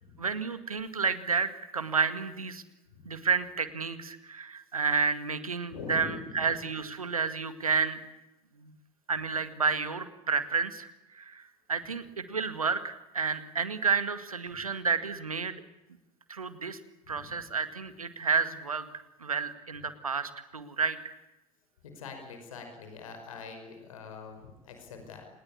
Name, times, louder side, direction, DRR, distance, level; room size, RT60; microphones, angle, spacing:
voice 1, 0.2-2.6 3.1-8.0 8.6-8.7 9.1-10.9 11.1-15.6 16.3-16.8 17.1-18.9 19.2-21.0, right 5 dB, 85° right, 12 dB, 2.0 m, -30 dB
voice 2, 5.7-6.4 14.5-14.6 17.1-17.4 21.8-25.3, left 4 dB, 70° left, 5 dB, 5.4 m, -44 dB
28.5 x 20.5 x 8.5 m, 0.98 s
figure-of-eight pair, 65°, 18 cm